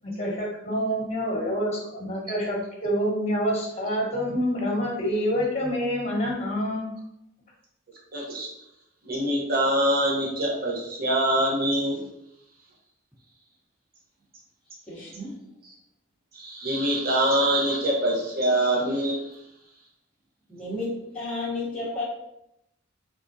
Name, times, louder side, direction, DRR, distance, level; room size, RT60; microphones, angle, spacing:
voice 1, 0.0-6.9, equal, 35° left, -1 dB, 1.0 m, -27 dB
voice 2, 8.1-8.5 9.0-12.1 15.6-15.7 16.3-19.4, right 1 dB, 50° right, -3 dB, 0.9 m, -24 dB
voice 3, 14.9-15.4 20.5-22.0, left 2 dB, 5° left, -8 dB, 0.9 m, -32 dB
3.7 x 3.5 x 2.6 m, 0.79 s
head